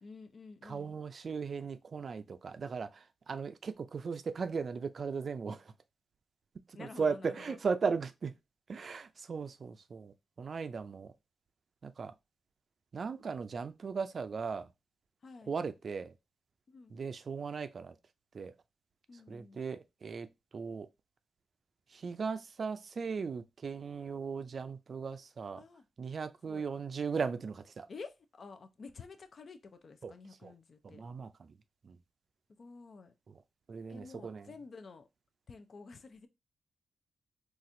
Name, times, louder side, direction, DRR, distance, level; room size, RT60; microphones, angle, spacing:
voice 1, 0.0-0.9 6.7-7.6 15.2-15.5 16.7-17.0 19.1-19.6 25.6-25.8 26.4-26.7 27.9-31.0 32.6-33.1 33.9-35.1 35.5-36.3, left 4 dB, 55° left, 0.5 m, -50 dB
voice 2, 0.6-5.7 6.7-8.3 8.7-11.1 11.8-12.1 12.9-14.7 15.5-16.1 16.9-18.0 18.3-18.5 19.3-20.3 20.5-20.9 21.9-25.6 26.0-27.9 30.0-30.1 30.4-30.5 30.8-31.6 31.8-32.0 33.3-33.4 33.7-34.5, right 5 dB, 55° right, 0.4 m, -37 dB
4.1 x 2.5 x 2.6 m
cardioid pair, 60°, 0 cm